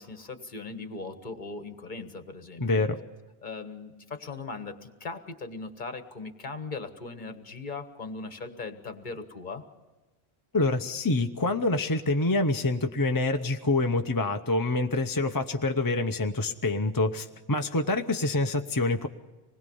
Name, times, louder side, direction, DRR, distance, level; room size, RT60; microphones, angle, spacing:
voice 1, 0.0-2.9 3.4-9.6, left 3 dB, 45° left, 8 dB, 1.5 m, -39 dB
voice 2, 2.6-3.0 10.5-19.1, left 2 dB, 20° left, 5 dB, 0.7 m, -26 dB
26.0 x 20.5 x 5.5 m, 1.2 s
omnidirectional pair, 1.1 m